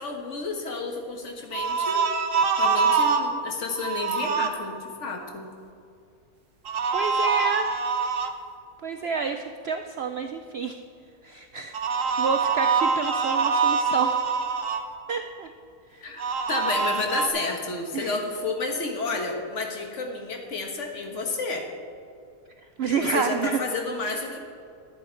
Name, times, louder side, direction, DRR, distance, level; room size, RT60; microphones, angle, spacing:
voice 1, 0.0-2.1 2.6-5.5 16.0-21.7 23.0-24.4, left 3 dB, 50° left, 3 dB, 1.6 m, -31 dB
sound 1, 1.5-3.3 3.8-4.5 6.7-8.3 11.7-14.8 16.2-17.3, right 5 dB, 60° right, 1.1 m, -24 dB
voice 2, 6.9-7.7 8.8-10.8 11.2-14.3 15.1-15.5 15.9-16.1 17.9-18.2 22.8-23.6, right 6 dB, 75° right, 7 dB, 0.5 m, -29 dB
11.5 x 10.5 x 4.5 m, 2.5 s
omnidirectional pair, 1.7 m